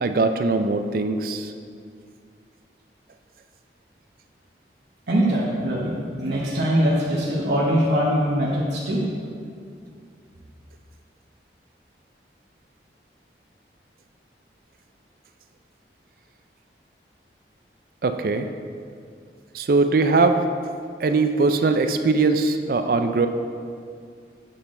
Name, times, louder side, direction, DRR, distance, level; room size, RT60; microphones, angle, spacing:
voice 1, 0.0-1.5 18.0-18.5 19.5-20.4 21.0-23.3, right 3 dB, 55° right, 8 dB, 0.4 m, -21 dB
voice 2, 5.1-9.1, equal, 80° right, -6 dB, 1.1 m, -22 dB
8.4 x 5.7 x 3.8 m, 2.3 s
head